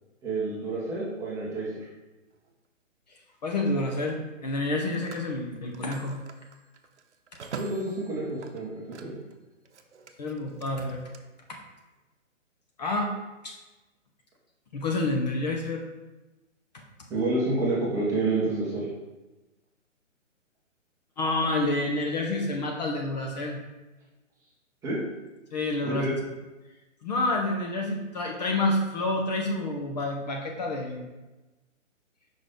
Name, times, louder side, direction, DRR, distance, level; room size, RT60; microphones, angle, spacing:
voice 1, 0.2-1.9 7.5-9.2 17.1-18.9 24.8-25.0 25.8-26.1, right 2 dB, 10° right, -6 dB, 0.9 m, -29 dB
Telephone, 2.3-2.5 4.5-9.3 9.6-11.2, right 5 dB, 60° right, 0.8 m, -45 dB
voice 2, 3.4-6.2 10.2-11.0 12.8-13.1 13.4-13.5 14.7-15.8 21.2-23.6 25.5-26.1 27.0-31.0, left 2 dB, 35° left, 1 dB, 0.7 m, -28 dB
5.3 x 3.9 x 5.0 m, 1.1 s
hypercardioid pair, 145°, 38 cm